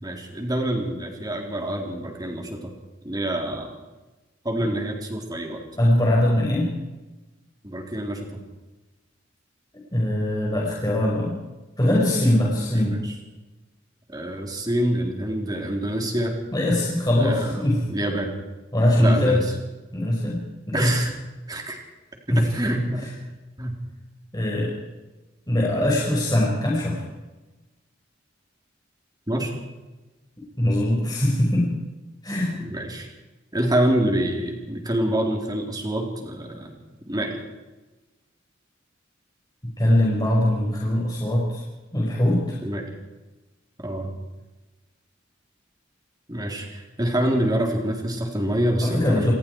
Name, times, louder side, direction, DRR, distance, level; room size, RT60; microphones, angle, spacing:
voice 1, 0.0-2.7 3.0-3.7 4.4-5.6 7.6-8.3 12.8-13.1 14.1-16.4 17.2-18.3 19.0-19.4 20.7-21.1 21.5-21.8 22.4-23.2 23.6-23.7 29.3-29.5 32.6-33.1 33.5-36.7 37.1-37.4 42.6-42.8 43.8-44.1 46.3-49.3, right 1 dB, 20° right, 2 dB, 3.8 m, -26 dB
voice 2, 5.8-6.7 9.9-11.3 11.8-13.0 16.5-17.8 18.7-19.4 19.9-20.9 22.3-22.5 24.3-24.7 25.5-27.0 30.6-31.7 32.2-32.5 39.8-41.6 41.9-42.6 48.8-49.3, left 1 dB, 20° left, -4 dB, 5.4 m, -21 dB
28.0 x 19.5 x 4.8 m, 1.1 s
head